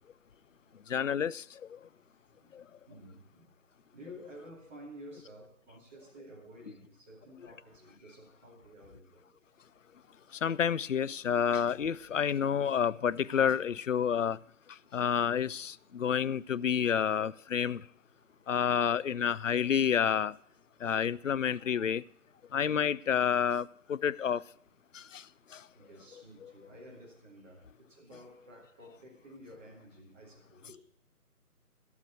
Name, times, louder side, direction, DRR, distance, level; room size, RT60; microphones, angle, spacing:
voice 1, 0.9-1.4 10.4-14.4 14.9-17.8 18.5-20.3 20.8-22.0 22.5-24.4, left 8 dB, 55° left, 0.5 m, -29 dB
voice 2, 1.8-2.6 2.9-3.6 3.9-9.2 12.3-12.5 15.9-16.3 18.1-18.5 25.7-30.8, equal, 10° right, 1.5 m, -53 dB
16.5 x 6.7 x 6.7 m
figure-of-eight pair, 160°, 45 cm